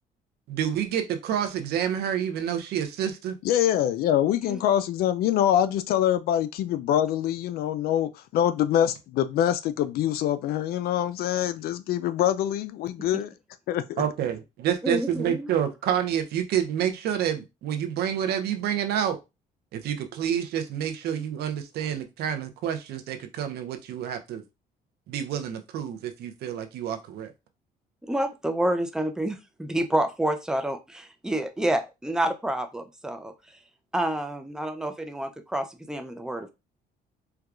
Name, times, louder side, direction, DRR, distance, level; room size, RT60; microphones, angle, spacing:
voice 1, 0.5-3.3 14.0-19.2 19.7-24.4 25.1-27.3, right 9 dB, 70° right, 0.7 m, -28 dB
voice 2, 3.4-13.3 13.7-14.0, left 11 dB, 65° left, 0.4 m, -25 dB
voice 3, 14.8-15.5 28.1-33.3 33.9-36.5, right 1 dB, 5° right, 0.5 m, -28 dB
4.5 x 2.3 x 2.4 m
cardioid pair, 110°, 17 cm